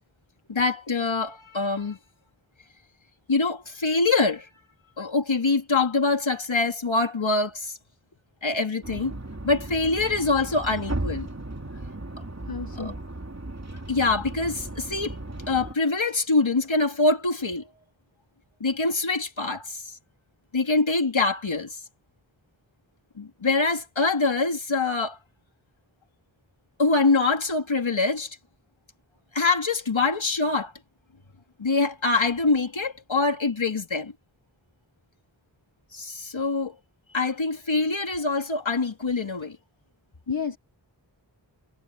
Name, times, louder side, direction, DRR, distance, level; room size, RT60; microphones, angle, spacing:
voice 1, 0.5-2.0 3.3-4.5 5.0-7.7 8.4-9.1 9.4-11.3 12.8-12.9 13.9-15.1 15.5-17.7 18.6-19.8 20.5-21.8 23.2-25.2 26.8-28.4 29.3-30.7 31.6-34.1 35.9-36.7 37.1-39.6, left 3 dB, 90° left, 2.7 m, -24 dB
sound 1, 8.8-15.8, right 2 dB, 35° right, 3.2 m, -36 dB
voice 2, 12.5-12.9 40.3-40.6, left 5 dB, 50° left, 1.4 m, -30 dB
wide cardioid pair, 50°, 46 cm